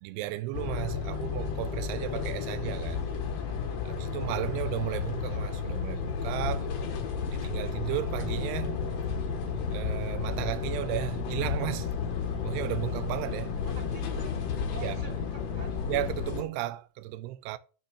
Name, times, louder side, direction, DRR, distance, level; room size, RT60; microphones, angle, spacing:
voice 1, 0.0-3.1 3.9-6.8 7.3-8.8 9.7-11.9 12.4-13.6 14.8-15.1 15.8-17.6, right 15 dB, 90° right, 2.6 m, -34 dB
sound 1, 0.5-16.4, left 6 dB, 60° left, 1.9 m, -32 dB
voice 2, 13.4-14.4 14.7-15.8, right 2 dB, 15° right, 2.1 m, -47 dB
9.4 x 5.8 x 5.7 m
omnidirectional pair, 4.6 m